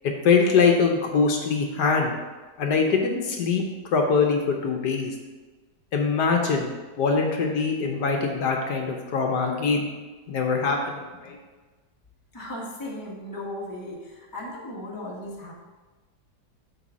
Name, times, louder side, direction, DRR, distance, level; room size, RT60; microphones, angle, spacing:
voice 1, 0.2-2.1 2.6-3.6 3.9-5.1 5.9-6.7 7.0-9.9 10.3-11.4, left 5 dB, 70° left, 2 dB, 1.3 m, -23 dB
voice 2, 12.3-15.5, left 1 dB, 15° left, -3 dB, 1.1 m, -36 dB
8.1 x 3.4 x 6.1 m, 1.3 s
omnidirectional pair, 1.9 m